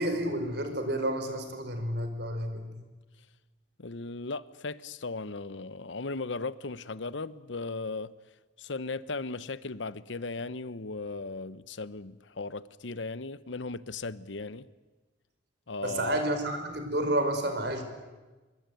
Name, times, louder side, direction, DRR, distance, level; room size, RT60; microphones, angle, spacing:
voice 1, 0.0-2.8 15.8-17.8, right 1 dB, 60° right, 4.7 m, -30 dB
voice 2, 3.8-8.1 8.6-14.7 15.7-16.2, left 3 dB, 75° left, 0.9 m, -37 dB
25.0 x 23.0 x 9.3 m
head